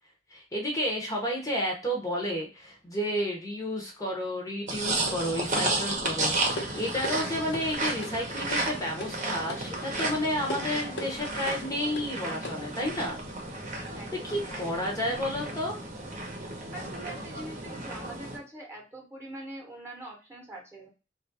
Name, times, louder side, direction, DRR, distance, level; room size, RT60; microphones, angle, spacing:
voice 1, 0.3-13.2 14.2-15.8, equal, 20° left, -1 dB, 0.8 m, -31 dB
sound 1, 4.7-18.4, right 2 dB, 40° right, 0.9 m, -33 dB
sound 2, 5.1-12.8, left 1 dB, 70° left, 0.8 m, -42 dB
voice 2, 13.9-14.7 16.7-20.9, right 1 dB, 15° right, 0 dB, 1.0 m, -43 dB
3.1 x 2.5 x 4.0 m, 0.31 s
head